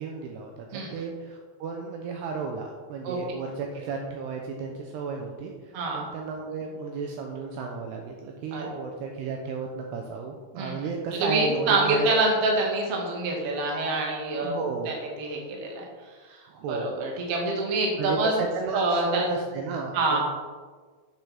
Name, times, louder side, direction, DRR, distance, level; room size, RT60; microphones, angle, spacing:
voice 1, 0.0-12.1 14.4-14.9 16.5-17.0 18.0-20.2, right 4 dB, 90° right, 2 dB, 2.3 m, -33 dB
voice 2, 0.7-1.0 3.0-3.2 5.7-6.0 8.5-8.8 10.6-10.8 11.2-14.5 14.8-18.4 18.7-19.3 19.9-20.2, right 2 dB, 55° right, -1 dB, 1.7 m, -26 dB
9.3 x 7.0 x 5.8 m, 1.5 s
omnidirectional pair, 5.8 m